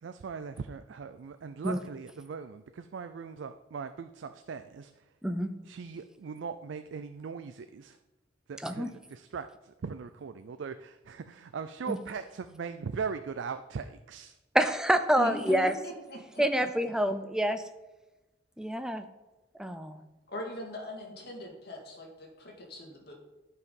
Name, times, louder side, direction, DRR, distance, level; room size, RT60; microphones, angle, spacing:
voice 1, 0.0-5.0 5.6-8.0 8.5-14.4, right 5 dB, 80° right, 9 dB, 0.4 m, -39 dB
voice 2, 14.5-15.7 16.4-17.6 18.6-19.0 19.6-20.0, equal, 5° right, 8 dB, 0.5 m, -27 dB
voice 3, 15.1-16.7 20.3-23.1, left 1 dB, 60° left, 1 dB, 2.0 m, -40 dB
11.0 x 4.7 x 5.3 m, 1.1 s
head